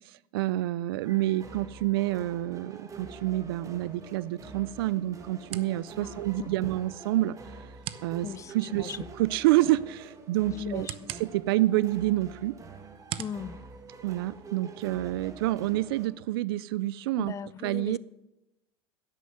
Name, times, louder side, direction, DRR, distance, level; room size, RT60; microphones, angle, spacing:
voice 1, 0.0-7.4 8.0-12.6 14.0-17.4 17.6-18.0, right 16 dB, 85° right, 0.4 m, -28 dB
sound 1, 1.0-16.1, right 4 dB, 25° right, 1.6 m, -46 dB
sound 2, 3.7-14.7, right 12 dB, 50° right, 0.9 m, -46 dB
voice 2, 6.0-6.7 8.2-9.0 10.5-11.1 13.2-13.6 17.2-18.0, left 7 dB, 25° left, 0.5 m, -38 dB
11.0 x 10.0 x 8.0 m
supercardioid pair, 115°, 12 cm